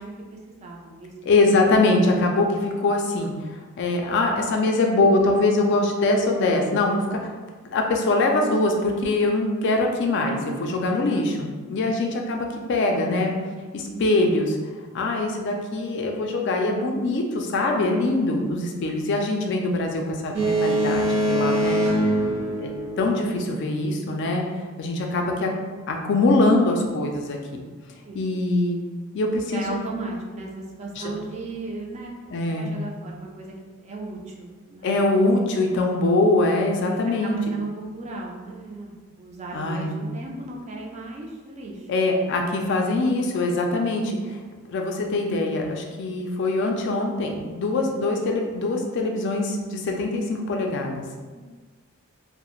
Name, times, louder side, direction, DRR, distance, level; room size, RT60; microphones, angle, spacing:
voice 1, 0.0-1.1 11.8-11.9 13.9-14.0 18.8-18.9 28.0-28.2 29.5-32.1 32.5-34.9 36.9-41.9 51.3-51.4, right 2 dB, 30° right, -1 dB, 0.3 m, -36 dB
voice 2, 1.2-3.3 3.8-7.3 7.7-13.3 13.7-14.6 14.9-21.8 22.6-22.7 23.0-24.5 24.8-25.5 25.9-27.6 28.1-28.8 29.1-29.8 31.0-31.1 32.3-32.7 34.8-37.4 39.5-40.0 41.9-44.4 44.7-51.0, left 2 dB, 55° left, 2 dB, 0.3 m, -23 dB
Boat Water vehicle, 20.3-23.5, right 1 dB, 60° right, 0.7 m, -23 dB
2.3 x 2.0 x 3.0 m, 1.4 s
head